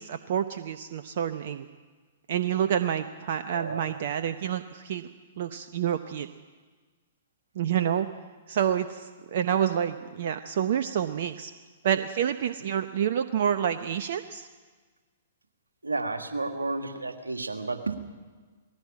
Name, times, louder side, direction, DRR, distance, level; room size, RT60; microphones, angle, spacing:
voice 1, 0.0-1.7 2.3-5.1 5.4-6.3 7.6-8.1 8.5-11.5 11.8-14.5, right 9 dB, 55° right, 9 dB, 0.8 m, -28 dB
voice 2, 3.5-3.8 15.8-18.0, right 3 dB, 85° right, 5 dB, 1.9 m, -31 dB
20.0 x 16.0 x 8.6 m, 1.4 s
figure-of-eight pair, 115°, 0 cm